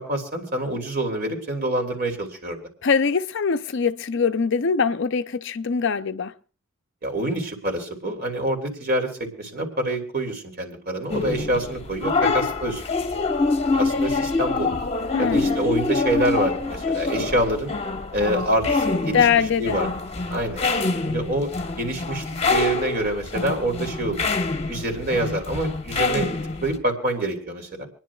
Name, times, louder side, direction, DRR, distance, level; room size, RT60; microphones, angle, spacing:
voice 1, 0.0-2.6 7.0-12.8 13.7-14.7 15.2-17.7 18.1-19.3 19.6-19.9 20.3-20.6 21.0-22.2 22.5-24.2 24.7-26.3 26.6-27.9, right 1 dB, 45° right, 3.1 m, -26 dB
voice 2, 2.8-6.3 12.2-12.5 15.1-15.6 19.1-19.8, left 6 dB, 55° left, 0.5 m, -22 dB
sound 1, 11.1-26.8, left 3 dB, 25° left, 1.1 m, -26 dB
27.5 x 10.5 x 2.3 m
head